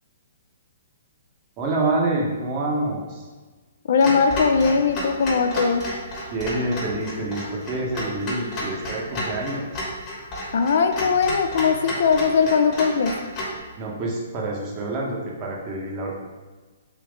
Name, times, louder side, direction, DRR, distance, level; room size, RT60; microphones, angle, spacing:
voice 1, 1.6-3.3 6.3-9.8 13.8-16.1, right 2 dB, 35° right, -2 dB, 0.9 m, -27 dB
voice 2, 3.9-5.9 10.5-13.1, left 5 dB, 60° left, 7 dB, 0.3 m, -20 dB
Clock, 4.0-13.6, left 1 dB, 30° left, 1.0 m, -32 dB
3.5 x 2.8 x 3.5 m, 1.3 s
hypercardioid pair, 130°, 0 cm